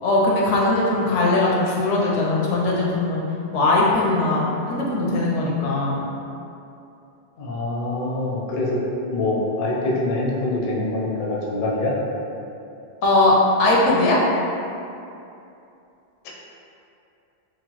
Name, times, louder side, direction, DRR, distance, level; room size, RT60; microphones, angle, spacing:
voice 1, 0.0-3.2 3.5-6.0 13.0-14.2, left 2 dB, 85° left, -4 dB, 0.9 m, -20 dB
voice 2, 7.4-8.8 9.1-11.9 16.2-16.3, left 2 dB, 60° left, -4 dB, 0.6 m, -24 dB
2.9 x 2.1 x 2.9 m, 2.7 s
omnidirectional pair, 1.2 m